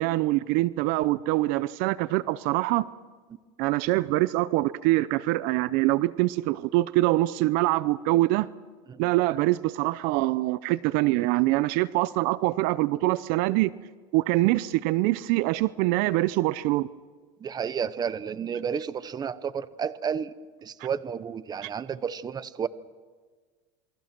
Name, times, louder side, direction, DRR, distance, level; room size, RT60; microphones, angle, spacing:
voice 1, 0.0-2.9 3.6-8.5 9.0-13.7 14.1-16.9 21.6-21.7, right 18 dB, 60° right, 17 dB, 0.7 m, -24 dB
voice 2, 17.4-20.3 20.6-22.7, right 7 dB, 25° right, 15 dB, 1.0 m, -31 dB
28.0 x 23.0 x 6.1 m, 1.5 s
supercardioid pair, 125°, 16 cm